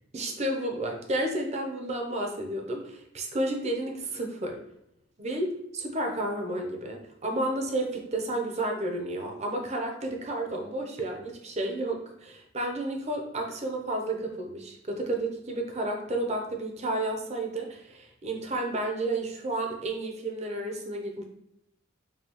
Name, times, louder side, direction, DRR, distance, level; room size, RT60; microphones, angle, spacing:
voice 1, 0.1-4.6 5.2-21.2, right 1 dB, 35° right, 2 dB, 0.6 m, -31 dB
5.5 x 2.3 x 2.9 m, 0.79 s
head